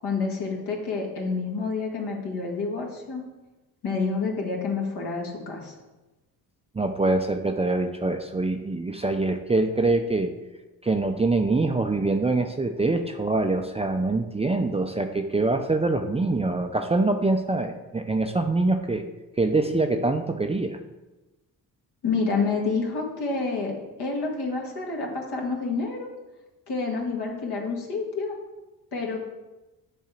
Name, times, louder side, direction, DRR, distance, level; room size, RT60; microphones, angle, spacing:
voice 1, 0.0-3.2 3.8-5.7 22.0-26.1 26.7-28.4 28.9-29.2, left 4 dB, 65° left, 0 dB, 1.9 m, -28 dB
voice 2, 6.7-10.3 10.8-19.0 19.4-20.8, right 2 dB, 15° right, 5 dB, 0.5 m, -24 dB
7.4 x 3.7 x 5.8 m, 1.1 s
supercardioid pair, 65°, 42 cm